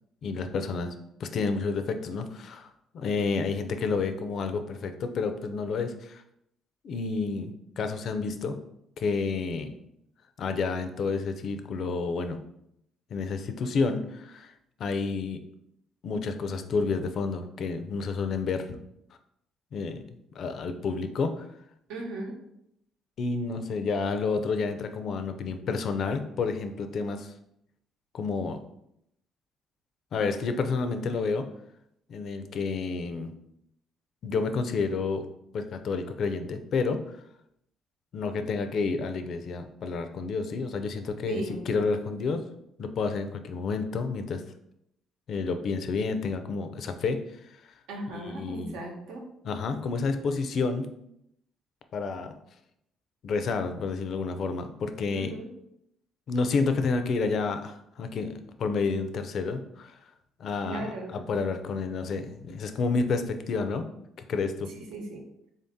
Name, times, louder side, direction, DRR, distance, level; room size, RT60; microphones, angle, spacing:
voice 1, 0.2-0.9 1.2-2.7 2.9-6.2 6.8-8.6 9.0-9.7 10.4-12.4 13.1-14.5 14.8-15.4 16.0-18.6 19.7-20.0 20.3-21.4 23.2-27.3 28.1-28.6 30.1-31.5 32.1-33.3 34.2-35.3 35.5-37.0 38.1-42.4 42.8-44.4 45.3-47.2 47.6-47.7 48.1-48.8 49.4-50.9 51.9-52.3 53.2-55.3 56.3-58.3 58.6-60.0 60.4-63.8 64.3-64.7, left 4 dB, 55° left, 8 dB, 0.4 m, -30 dB
voice 2, 21.9-22.4 41.3-41.6 47.9-49.2 55.1-55.5 60.6-61.2 64.9-65.2, right 2 dB, 90° right, 0 dB, 0.9 m, -36 dB
3.7 x 2.7 x 3.6 m, 0.77 s
cardioid pair, 110°, 0 cm